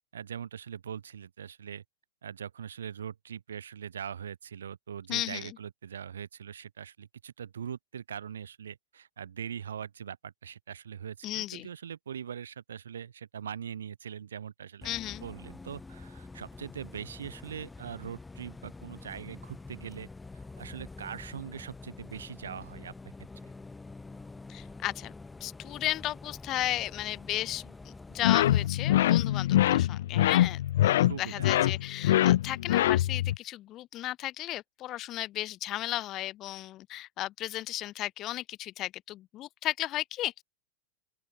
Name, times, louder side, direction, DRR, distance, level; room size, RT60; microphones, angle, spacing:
voice 1, 0.1-1.8 2.2-14.9 15.2-20.1 20.6-22.9 31.0-31.5, right 8 dB, 65° right, 7.6 m, -41 dB
voice 2, 5.1-5.5 11.2-11.7 14.8-15.2 24.5-25.1 25.4-40.4, left 15 dB, 35° left, 1.3 m, -35 dB
Bus, 14.8-28.7, left 3 dB, 10° left, 1.7 m, -47 dB
sound 1, 28.2-33.4, left 13 dB, 55° left, 0.4 m, -24 dB
open air
figure-of-eight pair, 90°, 0 cm